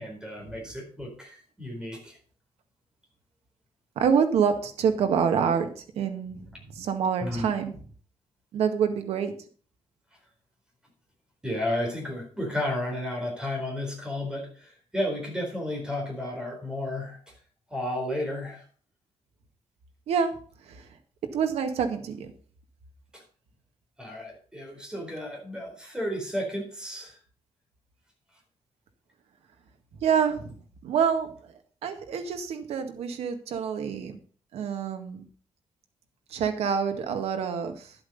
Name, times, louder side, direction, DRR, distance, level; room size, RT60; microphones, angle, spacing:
voice 1, 0.0-2.2 7.2-7.5 11.4-17.2 17.7-18.6 23.1-23.2 24.0-27.2, left 1 dB, 10° right, 0 dB, 4.3 m, -32 dB
voice 2, 4.0-7.7 8.5-9.3 20.1-20.3 20.7-20.8 21.3-22.3 30.0-30.5 30.8-31.5 31.8-34.2 34.5-35.2 36.3-37.9, right 7 dB, 85° right, 7 dB, 1.8 m, -27 dB
11.5 x 8.0 x 5.4 m, 0.43 s
cardioid pair, 135°, 10 cm